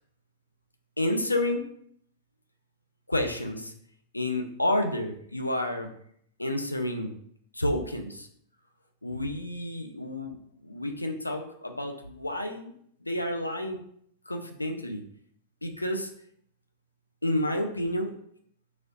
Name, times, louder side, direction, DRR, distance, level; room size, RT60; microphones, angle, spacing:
voice 1, 1.0-1.6 3.1-3.7 4.1-5.9 6.4-7.1 7.5-8.3 9.0-10.4 10.6-12.7 13.0-13.8 14.3-15.0 15.6-16.1 17.2-18.1, left 1 dB, 85° left, 5 dB, 0.3 m, -30 dB
2.9 x 2.7 x 2.5 m, 0.66 s
figure-of-eight pair, 90°, 0 cm